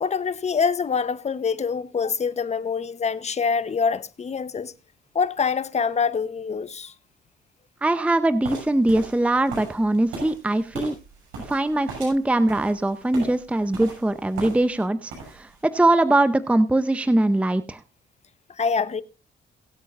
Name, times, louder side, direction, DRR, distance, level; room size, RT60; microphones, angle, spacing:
voice 1, 0.0-4.7 5.1-6.9 18.6-19.0, left 5 dB, 35° left, 0.9 m, -25 dB
voice 2, 7.8-10.9 11.5-17.8, right 2 dB, 5° right, 0.6 m, -22 dB
sound 1, 8.4-14.8 15.1-15.6, right 3 dB, 85° right, 6.8 m, -38 dB
22.0 x 8.2 x 2.5 m
cardioid pair, 90°, 20 cm